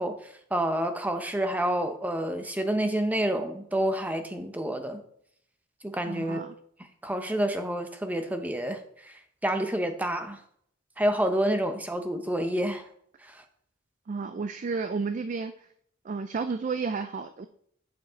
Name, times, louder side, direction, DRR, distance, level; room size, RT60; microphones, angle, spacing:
voice 1, 0.0-5.0 5.8-6.4 7.0-10.4 11.0-12.8 13.2-13.4, right 1 dB, 10° right, 7 dB, 0.7 m, -29 dB
voice 2, 6.1-6.5 14.1-15.5 16.0-17.5, right 4 dB, 40° right, 10 dB, 0.4 m, -32 dB
8.8 x 5.2 x 3.9 m, 0.67 s
head